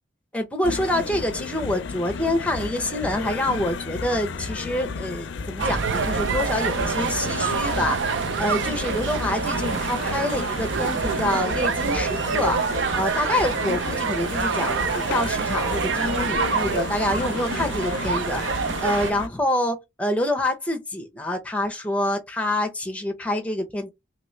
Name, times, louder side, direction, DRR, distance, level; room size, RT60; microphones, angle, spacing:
voice 1, 0.3-8.1 8.4-12.6 13.0-23.9, left 1 dB, 5° left, 0.6 m, -26 dB
sound 1, 0.6-19.3, left 4 dB, 75° left, 0.4 m, -33 dB
sound 2, 5.6-19.1, right 5 dB, 75° right, 0.5 m, -26 dB
2.9 x 2.7 x 3.1 m
head